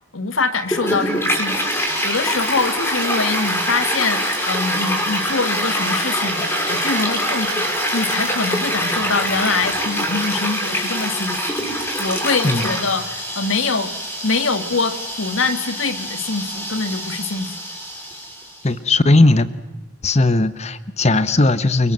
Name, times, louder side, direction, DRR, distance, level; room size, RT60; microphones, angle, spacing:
voice 1, 0.1-11.4 11.7-13.9 14.2-17.5, left 4 dB, 80° left, 10 dB, 2.0 m, -24 dB
Toilet flush, 0.7-18.6, equal, 10° left, 6.4 m, -24 dB
voice 2, 12.4-12.7 18.6-19.5 20.0-21.9, left 2 dB, 35° left, 14 dB, 1.2 m, -17 dB
28.5 x 25.5 x 7.8 m, 1.0 s
head